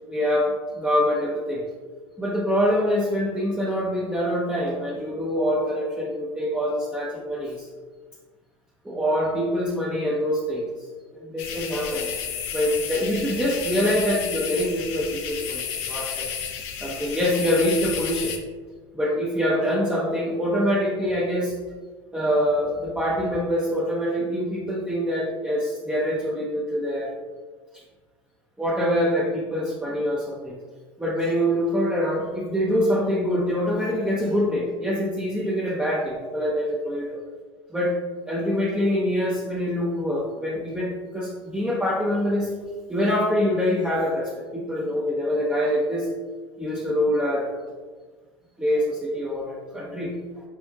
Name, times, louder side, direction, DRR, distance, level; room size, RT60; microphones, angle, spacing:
voice 1, 0.1-1.6 2.2-7.7 8.8-10.7 11.1-12.3 12.5-16.3 16.8-18.4 18.9-21.6 22.1-27.1 28.6-30.6 31.0-37.2 37.7-38.0 38.3-42.5 42.9-46.1 46.6-47.6 48.6-50.2, equal, 5° right, -5 dB, 0.7 m, -25 dB
sound 1, 11.4-18.4, left 8 dB, 65° left, 0.6 m, -32 dB
4.6 x 4.2 x 2.3 m, 1.4 s
hypercardioid pair, 85°, 16 cm